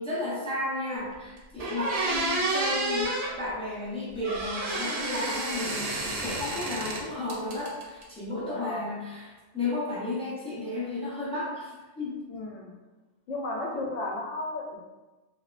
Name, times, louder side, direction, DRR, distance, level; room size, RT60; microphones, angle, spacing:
voice 1, 0.0-5.9 6.2-12.2, left 2 dB, 10° left, -7 dB, 0.4 m, -33 dB
sound 1, 1.1-1.2 1.6-3.3 4.2-7.0 7.3-8.0, right 2 dB, 85° right, 0.9 m, -30 dB
voice 2, 8.3-8.9 12.3-12.7 13.3-14.8, left 2 dB, 85° left, -1 dB, 0.9 m, -34 dB
2.9 x 2.0 x 2.3 m, 1.2 s
omnidirectional pair, 1.2 m